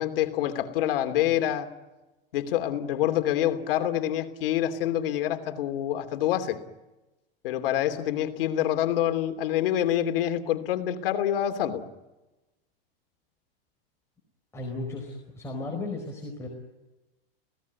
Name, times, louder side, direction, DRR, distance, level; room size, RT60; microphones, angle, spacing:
voice 1, 0.0-1.7 2.3-6.6 7.4-11.8, left 11 dB, 70° left, 7 dB, 3.0 m, -26 dB
voice 2, 14.5-16.5, left 2 dB, 10° left, 0 dB, 4.6 m, -35 dB
30.0 x 17.5 x 9.5 m, 1.1 s
supercardioid pair, 165°, 29 cm